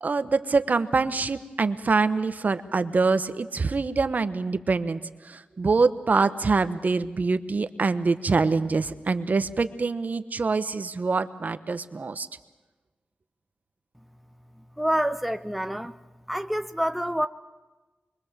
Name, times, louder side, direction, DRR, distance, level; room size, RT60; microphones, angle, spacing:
voice 1, 0.0-5.0 5.3-12.3, right 4 dB, 55° right, 11 dB, 1.1 m, -25 dB
voice 2, 14.8-15.9 16.3-17.3, equal, ahead, 9 dB, 0.8 m, -27 dB
25.5 x 23.0 x 7.4 m, 1.2 s
wide cardioid pair, 75°, 3 cm